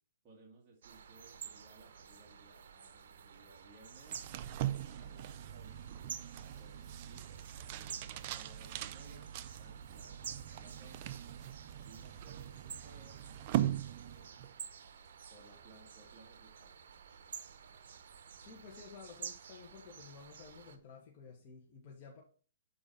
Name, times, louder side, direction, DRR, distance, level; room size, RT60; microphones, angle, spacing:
voice 1, 0.2-4.2 4.9-5.9 6.6-9.3 9.6-11.2 11.9-13.3 13.5-14.6 15.3-16.7, right 2 dB, 20° right, -3 dB, 1.8 m, -61 dB
sound 1, 0.8-20.8, right 7 dB, 65° right, 0.9 m, -51 dB
sound 2, 4.0-14.6, right 12 dB, 35° right, 0.5 m, -41 dB
voice 2, 18.4-22.2, left 5 dB, 35° left, -2 dB, 1.7 m, -53 dB
7.0 x 4.7 x 4.3 m, 0.39 s
hypercardioid pair, 160°, 0 cm